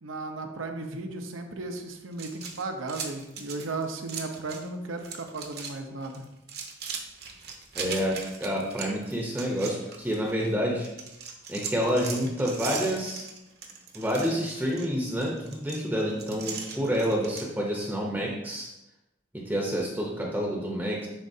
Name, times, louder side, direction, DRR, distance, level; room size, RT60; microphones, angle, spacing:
voice 1, 0.0-6.2, right 3 dB, 85° right, 5 dB, 0.8 m, -35 dB
sound 1, 2.1-4.7 5.0-5.7 6.0-10.5 10.8-17.5, right 5 dB, 50° right, 0.9 m, -39 dB
voice 2, 7.7-10.9 11.5-13.3 13.9-18.7 19.3-21.1, equal, 10° right, -2 dB, 0.8 m, -28 dB
10.0 x 4.2 x 2.7 m, 0.92 s
head